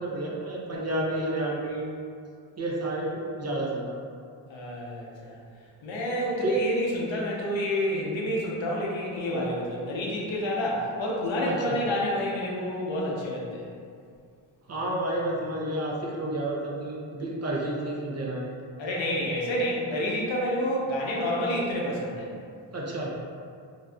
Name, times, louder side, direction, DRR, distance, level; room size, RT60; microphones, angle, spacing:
voice 1, 0.0-1.9 2.6-4.0 6.4-6.5 11.4-11.8 14.7-18.5 22.7-23.1, right 1 dB, 35° right, -4 dB, 0.5 m, -30 dB
voice 2, 4.5-5.3 5.8-13.7 18.8-22.3, equal, 70° left, -3 dB, 0.7 m, -29 dB
2.5 x 2.4 x 2.2 m, 2.3 s
supercardioid pair, 45°, 47 cm